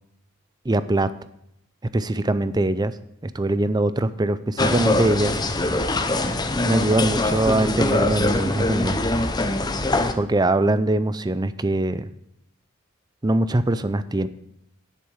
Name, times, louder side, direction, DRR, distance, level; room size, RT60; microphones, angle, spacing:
voice 1, 0.6-1.1 1.9-2.9 3.2-5.4 6.6-9.1 10.2-12.1 13.2-14.3, right 2 dB, 20° right, 14 dB, 0.5 m, -22 dB
sound 1, 4.6-10.1, left 2 dB, 20° left, 0.8 m, -23 dB
10.5 x 8.4 x 6.4 m, 0.77 s
head